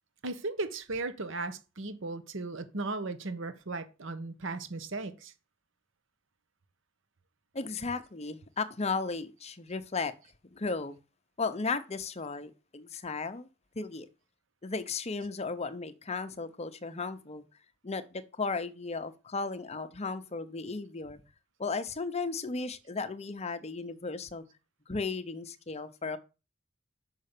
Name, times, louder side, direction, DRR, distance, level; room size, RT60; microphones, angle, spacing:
voice 1, 0.2-5.3, right 3 dB, 60° right, 1.0 m, -36 dB
voice 2, 7.5-10.1 10.5-11.0 11.4-13.5 13.7-14.1 14.6-17.4 17.8-21.2 21.6-24.4 24.9-26.2, left 4 dB, 30° left, 0.8 m, -35 dB
6.5 x 5.6 x 6.7 m
head